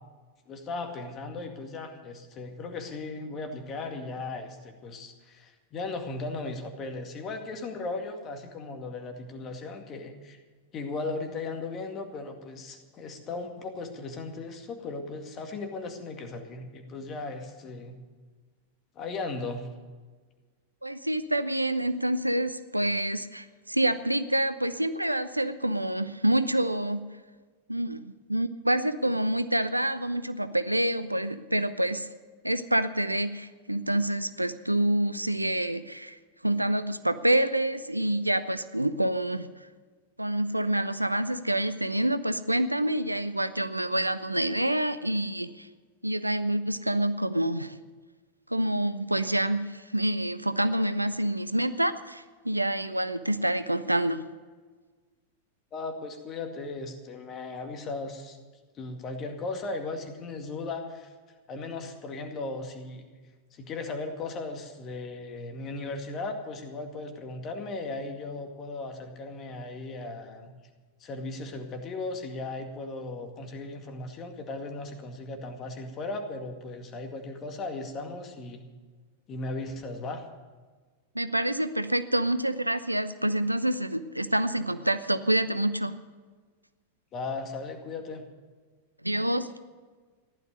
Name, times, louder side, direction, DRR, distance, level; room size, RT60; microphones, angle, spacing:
voice 1, 0.5-10.4 10.7-18.0 19.0-19.7 55.7-58.4 58.7-61.1 61.5-63.0 63.5-70.5 71.0-78.6 79.3-80.2 87.1-88.2, left 3 dB, 30° left, 5 dB, 2.2 m, -37 dB
voice 2, 20.8-27.0 27.7-32.1 32.4-39.5 40.2-45.7 46.0-47.7 48.5-54.2 81.1-86.0 89.0-89.5, right 1 dB, 85° right, 12 dB, 0.7 m, -27 dB
15.0 x 12.0 x 6.6 m, 1.4 s
figure-of-eight pair, 90°, 0 cm